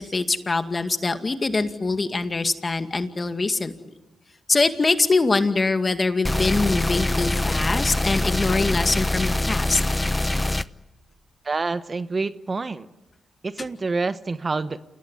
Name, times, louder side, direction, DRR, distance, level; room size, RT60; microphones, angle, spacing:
voice 1, 0.0-3.7 4.5-9.8, left 3 dB, 40° left, 8 dB, 2.2 m, -23 dB
sound 1, 6.2-10.6, left 1 dB, 15° left, 0.8 m, -24 dB
voice 2, 11.4-12.9 13.4-14.8, right 3 dB, 40° right, 13 dB, 1.1 m, -27 dB
28.0 x 19.5 x 9.8 m, 1.1 s
supercardioid pair, 50°, 0 cm